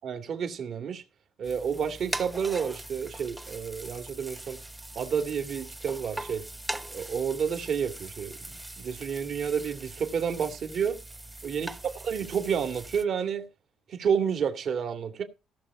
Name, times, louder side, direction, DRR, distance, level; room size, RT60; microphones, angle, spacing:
voice 1, 0.0-1.0 1.4-4.6 5.0-6.5 6.9-11.0 11.4-13.5 13.9-15.2, right 7 dB, 55° right, 2.3 m, -30 dB
sound 1, 1.4-13.0, right 1 dB, 10° right, 1.0 m, -41 dB
16.5 x 6.7 x 4.8 m
cardioid pair, 120°, 0 cm